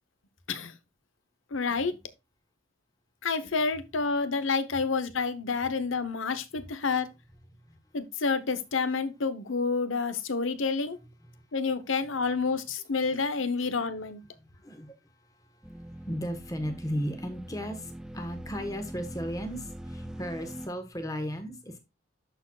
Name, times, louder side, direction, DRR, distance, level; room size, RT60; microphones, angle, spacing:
voice 1, 1.5-2.0 3.2-7.1 7.9-11.0 11.5-14.2, left 4 dB, 85° left, 0.9 m, -29 dB
voice 2, 14.3-21.8, equal, 20° left, 1.3 m, -36 dB
sound 1, 15.6-20.7, right 1 dB, 5° right, 0.4 m, -42 dB
12.5 x 4.5 x 2.3 m
head